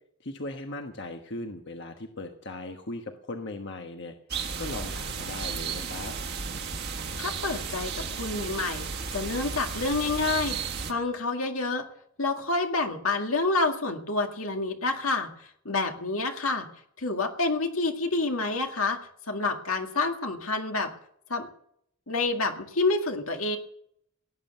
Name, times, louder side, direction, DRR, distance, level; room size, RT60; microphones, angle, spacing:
voice 1, 0.2-4.1 4.6-6.1, left 2 dB, 55° left, 4 dB, 1.3 m, -38 dB
sound 1, 4.3-10.9, right 5 dB, 50° right, 1.5 m, -34 dB
voice 2, 7.2-11.9 12.2-15.3 15.7-16.7 17.0-19.0 19.3-20.9 21.3-21.5 22.1-23.6, left 3 dB, 85° left, 4 dB, 2.1 m, -28 dB
17.5 x 9.2 x 6.9 m, 0.68 s
head